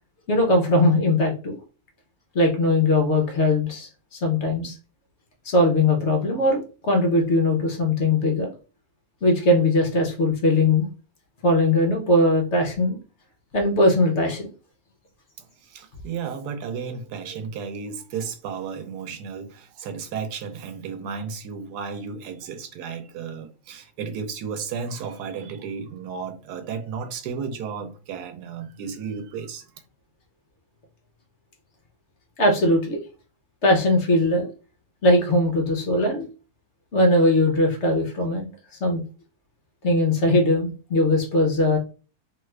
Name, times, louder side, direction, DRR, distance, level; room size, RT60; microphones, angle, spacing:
voice 1, 0.3-1.6 2.3-4.8 5.4-8.5 9.2-10.9 11.4-13.0 13.5-14.5 32.4-33.0 33.6-34.5 35.0-36.3 36.9-38.5 38.8-39.0 39.8-41.8, left 1 dB, 55° left, 0.9 m, -20 dB
voice 2, 15.4-29.8, right 6 dB, 85° right, 1.2 m, -33 dB
2.9 x 2.4 x 3.2 m
omnidirectional pair, 1.6 m